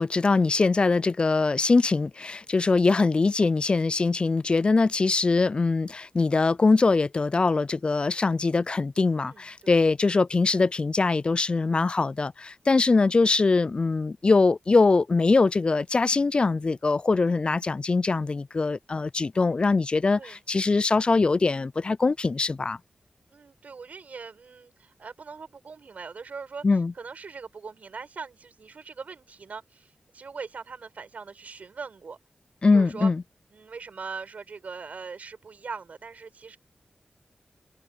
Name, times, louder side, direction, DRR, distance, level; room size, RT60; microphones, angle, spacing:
voice 1, 0.0-22.8 26.6-26.9 32.6-33.2, left 3 dB, 40° left, 0.4 m, -22 dB
voice 2, 9.2-9.8 20.2-20.4 23.3-26.6 26.9-32.2 32.7-33.1 33.5-36.6, right 5 dB, 70° right, 7.8 m, -41 dB
wide cardioid pair, 70°, 3 cm